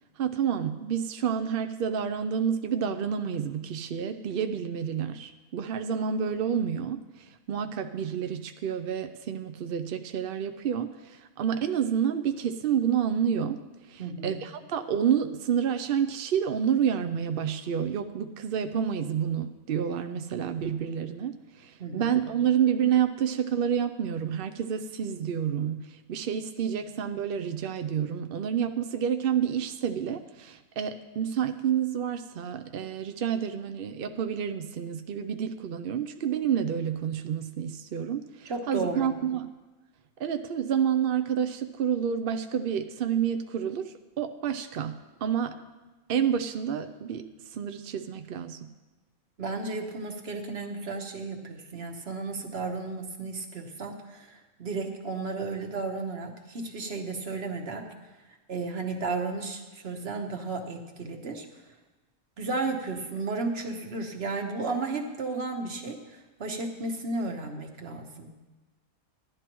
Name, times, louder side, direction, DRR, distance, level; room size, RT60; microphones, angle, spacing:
voice 1, 0.2-39.5 40.2-45.6 46.1-48.7, right 8 dB, 65° right, 8 dB, 0.5 m, -29 dB
voice 2, 14.0-14.4 21.8-22.1 38.4-39.1 49.4-57.9 58.5-61.4 62.4-68.3, right 3 dB, 50° right, 4 dB, 1.3 m, -33 dB
16.0 x 11.5 x 3.0 m, 1.1 s
omnidirectional pair, 1.5 m